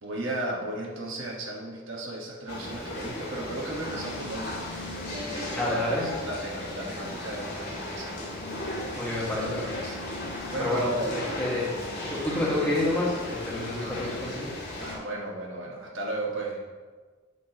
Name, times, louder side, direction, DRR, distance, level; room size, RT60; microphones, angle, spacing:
voice 1, 0.0-4.8 5.1-8.2 9.3-10.0 10.5-11.2 13.6-14.3 14.7-16.6, right 1 dB, 70° right, -2 dB, 1.4 m, -35 dB
sound 1, 2.5-15.0, left 1 dB, 55° left, 2.0 m, -36 dB
voice 2, 5.5-6.1 8.9-9.7 10.6-11.7 12.0-14.5, left 1 dB, 10° left, -6 dB, 1.6 m, -29 dB
8.3 x 6.0 x 3.0 m, 1.4 s
head